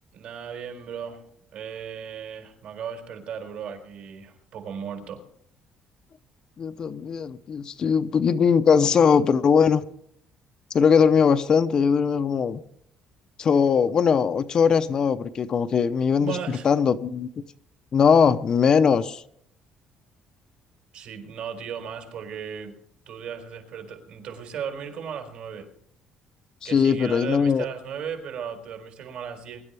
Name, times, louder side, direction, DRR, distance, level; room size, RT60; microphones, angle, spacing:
voice 1, 0.1-1.2 1.5-5.2 16.2-16.7 20.9-22.7 23.1-25.7 26.6-29.6, right 7 dB, 60° right, 4.1 m, -36 dB
voice 2, 6.6-9.8 10.7-12.6 13.4-16.4 16.6-17.3 17.9-19.2 26.6-27.6, left 6 dB, 35° left, 0.6 m, -20 dB
23.0 x 11.5 x 3.4 m
cardioid pair, 170°, 2 cm